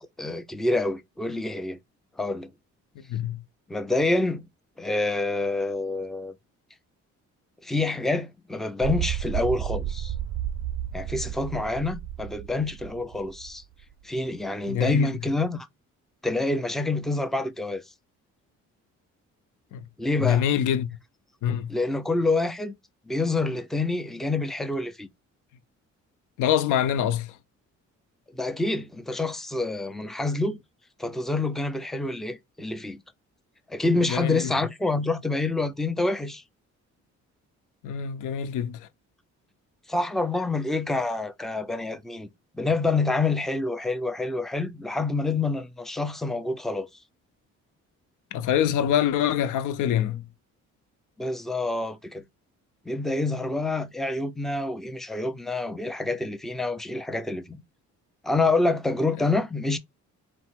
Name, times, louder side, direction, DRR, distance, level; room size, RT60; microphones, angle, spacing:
voice 1, 0.2-1.8 2.2-2.5 3.7-4.4 4.8-6.3 7.6-10.1 10.9-13.6 14.0-15.7 16.2-17.8 20.0-20.4 21.7-22.7 23.1-25.1 28.3-30.6 31.0-33.0 33.7-36.4 39.9-42.3 42.5-46.9 51.2-52.2 52.9-57.6 58.2-59.8, left 2 dB, ahead, 0.5 m, -27 dB
voice 2, 3.1-3.4 14.7-15.1 19.7-19.8 20.2-20.9 21.4-21.7 26.4-27.4 34.0-34.5 37.8-38.9 48.3-50.2, left 10 dB, 85° left, 0.6 m, -25 dB
sound 1, 8.8-13.5 13.8-13.9, right 11 dB, 50° right, 0.4 m, -32 dB
4.1 x 2.1 x 4.3 m
cardioid pair, 90°, 30 cm